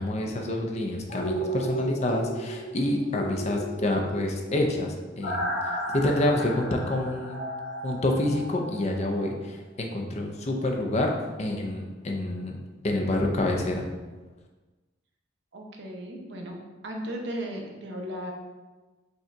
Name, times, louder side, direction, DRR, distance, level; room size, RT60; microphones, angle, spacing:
voice 1, 0.0-5.6 5.9-7.4 7.8-11.1 11.4-12.6 12.8-13.9, left 1 dB, 35° left, 1 dB, 0.5 m, -27 dB
sound 1, 1.1-9.0 9.3-9.4, right 1 dB, 75° left, 1.2 m, -34 dB
voice 2, 15.5-16.6 16.8-18.3, equal, 65° right, 1 dB, 0.7 m, -35 dB
5.3 x 2.3 x 3.9 m, 1.3 s
head